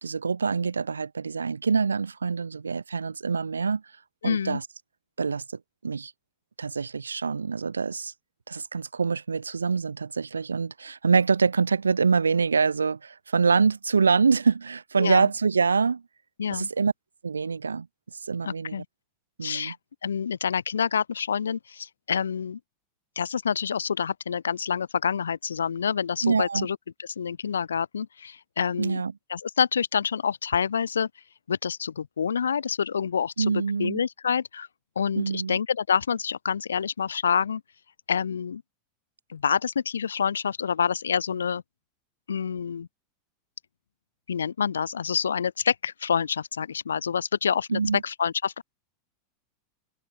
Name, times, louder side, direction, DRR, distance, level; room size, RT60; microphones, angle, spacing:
voice 1, 0.0-3.8 4.2-4.6 5.2-5.4 5.8-6.1 6.6-8.1 8.5-16.0 16.5-16.9 17.2-17.9 18.2-18.8 19.4-19.7 26.2-26.7 28.8-29.1 33.4-34.0 35.2-35.6 47.7-48.0, right 5 dB, 80° right, 2.0 m, -25 dB
voice 2, 4.2-4.6 15.0-15.3 16.4-16.7 18.4-18.8 19.4-19.8 20.0-22.6 23.2-29.0 29.3-31.1 31.5-34.7 35.0-37.6 38.1-38.6 39.3-41.6 42.3-42.9 44.3-48.6, left 7 dB, 75° left, 1.0 m, -27 dB
figure-of-eight pair, 85°, 0 cm